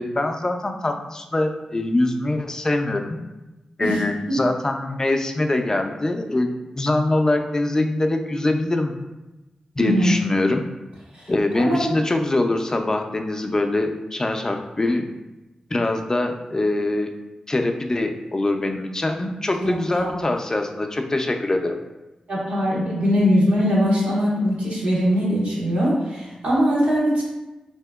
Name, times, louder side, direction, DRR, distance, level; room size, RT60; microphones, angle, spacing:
voice 1, 0.0-3.2 3.8-8.9 9.8-10.6 11.3-15.1 15.7-17.1 17.5-21.8, left 2 dB, 25° left, 5 dB, 0.3 m, -23 dB
voice 2, 9.8-10.1 11.1-11.9 20.0-20.1 22.3-27.2, equal, 90° right, -6 dB, 1.0 m, -21 dB
3.4 x 2.8 x 2.2 m, 1.1 s
wide cardioid pair, 75°, 2 cm